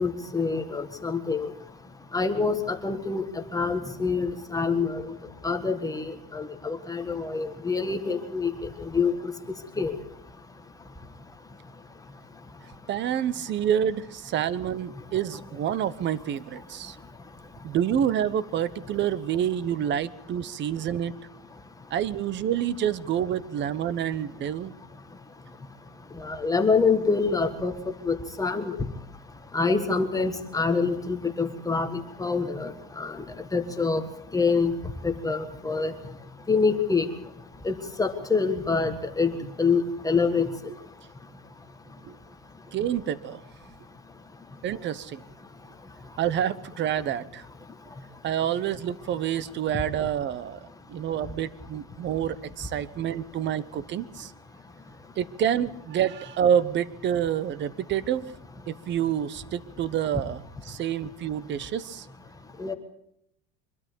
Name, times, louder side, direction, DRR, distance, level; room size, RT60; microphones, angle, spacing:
voice 1, 0.0-1.5 2.1-3.3 3.5-5.1 5.4-8.5 8.9-9.1 9.8-10.0 26.2-27.7 28.0-28.7 29.5-33.2 33.5-34.0 34.3-34.7 35.0-35.9 36.5-37.1 37.6-39.3 39.6-40.5 62.6-62.7, left 4 dB, 10° left, 6 dB, 1.6 m, -26 dB
voice 2, 12.9-17.0 17.6-21.3 21.9-24.7 42.0-42.2 42.7-43.4 44.6-45.2 46.2-47.4 48.2-54.3 55.2-58.2 58.7-62.1, right 9 dB, 35° right, 17 dB, 1.0 m, -28 dB
24.0 x 13.0 x 8.5 m, 0.75 s
supercardioid pair, 140°, 31 cm